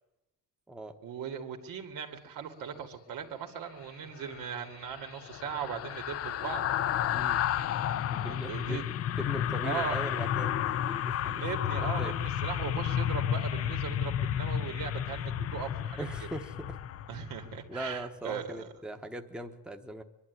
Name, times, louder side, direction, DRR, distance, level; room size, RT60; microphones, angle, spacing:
voice 1, 1.0-6.6 7.8-8.9 9.6-10.0 11.2-16.0 17.1-18.7, right 7 dB, 85° right, 4 dB, 2.5 m, -39 dB
sound 1, 4.2-17.5 17.9-18.1, left 10 dB, 45° left, 0.6 m, -32 dB
voice 2, 7.1-7.4 8.1-11.4 12.0-12.1 16.0-16.8 17.7-20.0, right 1 dB, 5° right, 5 dB, 1.1 m, -40 dB
23.5 x 11.5 x 9.5 m, 0.96 s
cardioid pair, 180°, 33 cm